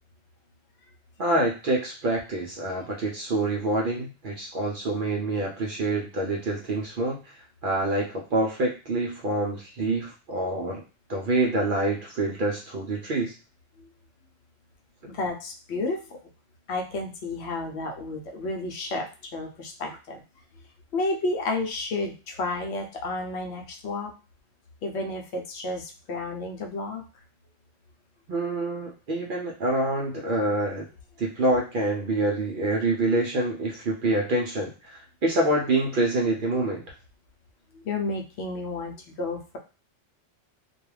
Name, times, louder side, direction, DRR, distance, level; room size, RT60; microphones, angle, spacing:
voice 1, 1.2-10.8 11.1-13.3 28.3-30.9 31.2-36.8, right 2 dB, 60° right, -2 dB, 0.6 m, -26 dB
voice 2, 15.1-16.2 16.7-20.2 20.9-24.1 24.8-27.0 37.8-39.6, left 2 dB, 70° left, 2 dB, 0.8 m, -31 dB
2.3 x 2.2 x 3.1 m, 0.33 s
omnidirectional pair, 1.3 m